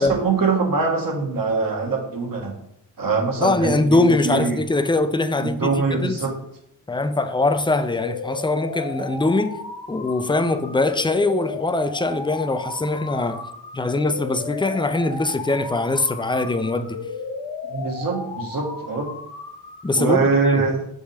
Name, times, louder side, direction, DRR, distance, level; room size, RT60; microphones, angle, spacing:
voice 1, 0.0-2.5 3.0-4.6 5.4-6.3 17.7-19.1 19.9-20.8, right 4 dB, 55° right, 1.6 m, -23 dB
voice 2, 3.4-6.2 6.9-9.6 9.9-13.4 13.7-17.0 19.8-20.2 20.5-20.6, left 2 dB, 10° left, 0.6 m, -22 dB
sound 1, 7.9-19.9, left 4 dB, 70° left, 1.0 m, -34 dB
6.1 x 5.3 x 3.4 m
cardioid pair, 55°, 41 cm